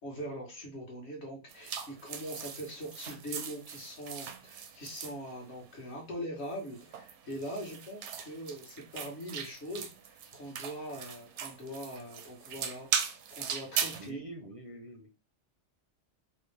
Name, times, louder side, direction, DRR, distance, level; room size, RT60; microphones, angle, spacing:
voice 1, 0.0-14.2, equal, 65° left, -1 dB, 1.5 m, -42 dB
sound 1, 1.5-5.8 6.5-14.1, right 7 dB, 80° right, 0.9 m, -39 dB
voice 2, 14.0-15.1, right 2 dB, 45° right, 2 dB, 0.4 m, -45 dB
4.2 x 2.1 x 3.2 m, 0.28 s
omnidirectional pair, 1.2 m